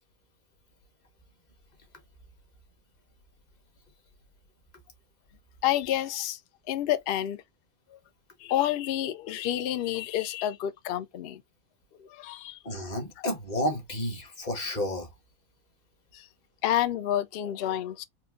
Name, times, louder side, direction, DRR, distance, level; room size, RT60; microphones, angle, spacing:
voice 1, 5.6-6.4 6.7-7.4 8.4-11.4 12.1-12.6 16.1-16.2 16.6-18.0, left 12 dB, 65° left, 0.6 m, -29 dB
voice 2, 12.6-15.1, left 1 dB, 35° left, 1.1 m, -31 dB
4.3 x 2.6 x 2.4 m
omnidirectional pair, 1.4 m